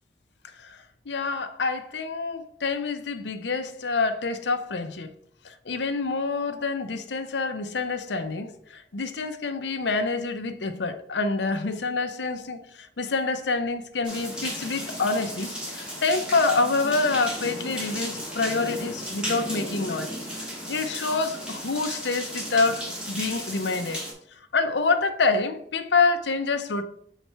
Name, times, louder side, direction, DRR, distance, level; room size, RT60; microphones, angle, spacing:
voice 1, 1.1-5.1 5.4-24.0 24.5-26.8, left 3 dB, 75° left, 0.7 m, -27 dB
sound 1, 14.0-24.1, equal, 5° right, 1.9 m, -34 dB
5.5 x 4.0 x 4.6 m
head